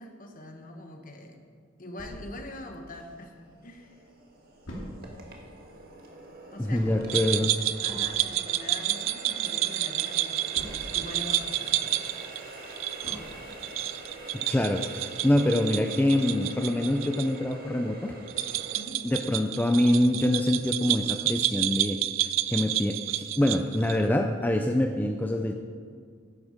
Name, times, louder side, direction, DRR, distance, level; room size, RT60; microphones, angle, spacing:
voice 1, 0.0-1.4 1.8-3.3 3.6-4.0 6.5-7.5 7.8-10.6 10.9-12.1 13.2-13.3 18.7-19.0, left 1 dB, 45° left, 4 dB, 1.1 m, -43 dB
sound 1, 2.0-3.5 3.9-4.0 4.2-11.2 11.6-13.7 14.2-14.3 14.7-14.8, equal, 75° left, 2.7 m, -45 dB
Water tap faucet, 3.0-18.8, right 2 dB, 50° right, 1.6 m, -44 dB
voice 2, 6.6-7.5 14.3-18.1 19.0-22.0 22.5-25.5, left 1 dB, 10° left, 4 dB, 0.4 m, -25 dB
sound 2, 7.1-17.3 17.5-17.6 18.3-24.0, right 14 dB, 70° right, 0.4 m, -30 dB
10.5 x 8.4 x 5.0 m, 2.1 s
head